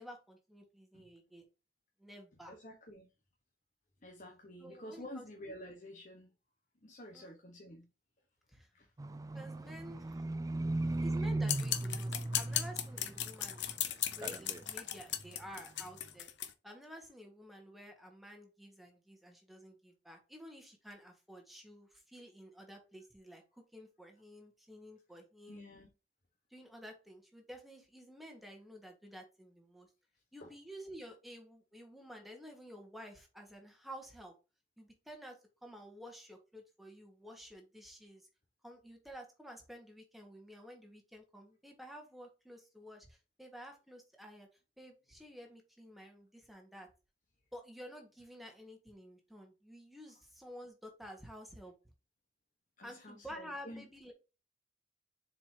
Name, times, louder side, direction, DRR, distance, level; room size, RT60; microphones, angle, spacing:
voice 1, 0.0-1.4 2.0-2.6 4.6-5.3 7.1-7.3 8.5-8.7 9.3-10.2 10.8-13.6 14.0-16.3 16.6-25.6 26.5-29.9 30.3-34.3 34.8-38.2 38.6-44.5 44.8-46.9 47.5-51.7 52.8-54.1, equal, ahead, 1.7 m, -51 dB
voice 2, 2.5-3.1 4.0-6.3 6.8-7.9 8.7-8.9 10.5-11.0 25.5-25.9 30.4-30.5 52.8-53.8, left 1 dB, 45° left, 1.3 m, -50 dB
Livestock farm animals working animals, 9.0-13.8 14.0-14.7 15.2-15.3, right 2 dB, 20° right, 0.4 m, -37 dB
sound 1, 11.5-16.5, left 11 dB, 90° left, 0.9 m, -37 dB
7.0 x 4.9 x 2.9 m
head